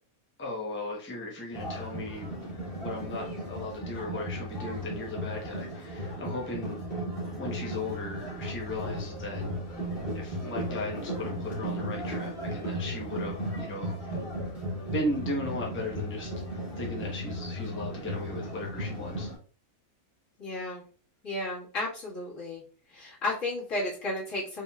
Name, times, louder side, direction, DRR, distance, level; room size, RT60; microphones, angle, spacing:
voice 1, 0.4-2.3 2.8-6.8 7.4-9.5 10.1-13.9 14.9-19.3, left 1 dB, 10° left, -2 dB, 0.8 m, -36 dB
sound 1, 1.5-19.4, equal, 40° left, 1.8 m, -35 dB
voice 2, 20.4-20.8 21.2-22.6 22.9-24.6, left 2 dB, 65° left, -7 dB, 2.1 m, -33 dB
4.7 x 3.6 x 2.3 m, 0.42 s
omnidirectional pair, 1.4 m